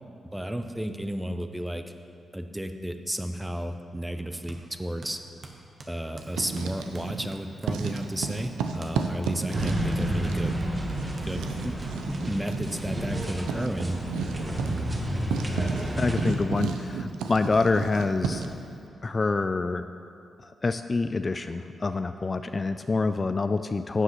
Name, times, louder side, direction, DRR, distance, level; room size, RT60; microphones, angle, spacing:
voice 1, 0.3-1.8 2.3-5.2 5.9-10.6 11.2-11.8 12.1-14.0, right 1 dB, 10° right, 7 dB, 0.7 m, -33 dB
sound 1, 4.5-4.6 5.0-8.1 8.4-8.5 8.8-9.0 9.2-12.7 13.3-13.4 13.9-14.0 14.4-14.5 14.8-14.9 15.1-15.8, right 3 dB, 55° right, 1.1 m, -48 dB
Writing, 6.2-7.3 7.6-18.6, right 5 dB, 85° right, 0.5 m, -33 dB
sound 2, 9.5-16.3, right 1 dB, 30° right, 1.6 m, -30 dB
voice 2, 16.0-18.4 19.0-19.9 20.4-24.0, left 3 dB, 40° left, 9 dB, 0.3 m, -26 dB
11.5 x 7.7 x 3.1 m, 2.5 s
supercardioid pair, 40°, 0 cm